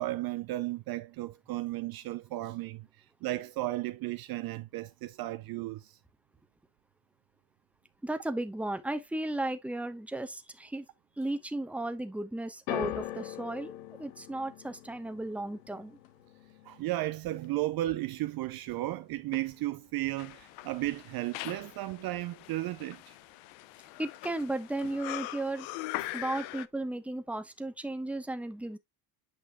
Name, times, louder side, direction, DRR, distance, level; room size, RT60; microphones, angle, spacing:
voice 1, 0.0-6.0 16.6-23.2 26.0-26.1, right 16 dB, 50° right, 0.5 m, -34 dB
voice 2, 8.0-10.8 11.2-16.0 24.0-25.7 26.1-28.8, right 2 dB, 5° right, 1.0 m, -35 dB
sound 1, 12.7-18.9 19.2-19.9 20.6-20.7, left 13 dB, 90° left, 1.1 m, -42 dB
sound 2, 20.2-26.7, left 17 dB, 70° left, 0.7 m, -42 dB
8.6 x 5.7 x 2.2 m
supercardioid pair, 85°, 50 cm